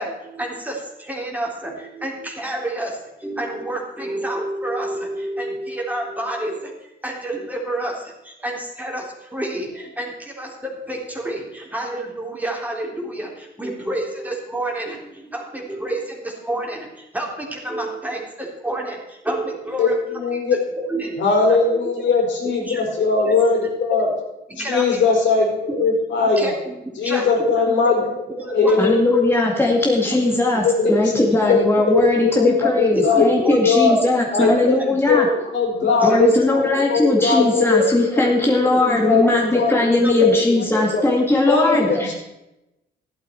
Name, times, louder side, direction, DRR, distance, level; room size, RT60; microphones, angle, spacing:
voice 1, 0.0-22.1 22.4-23.4 23.9-24.0 24.5-25.0 25.7-25.8 26.2-26.7 27.0-27.5 27.8-28.8 29.0-29.7 30.1-30.3 30.8-32.0 32.4-32.6 32.9-33.6 33.9-34.1 34.4-35.4 35.8-36.3 36.6-37.3 37.6-38.2 39.0-39.6 39.9-40.8 41.1-42.0, right 1 dB, 10° right, -1 dB, 3.7 m, -29 dB
voice 2, 19.8-20.5 21.2-24.1 24.6-26.5 27.0-28.0 28.5-28.9 30.6-30.9 31.3-31.6 31.9-34.0 34.3-34.8 35.1-35.2 35.5-36.6 36.9-37.8 38.8-39.3 39.5-39.8 40.1-40.3 41.5-42.1, left 4 dB, 70° left, 0 dB, 5.4 m, -19 dB
voice 3, 28.8-35.3 36.0-42.1, left 2 dB, 10° left, -2 dB, 2.4 m, -19 dB
14.0 x 12.0 x 4.6 m, 0.92 s
cardioid pair, 90°, 20 cm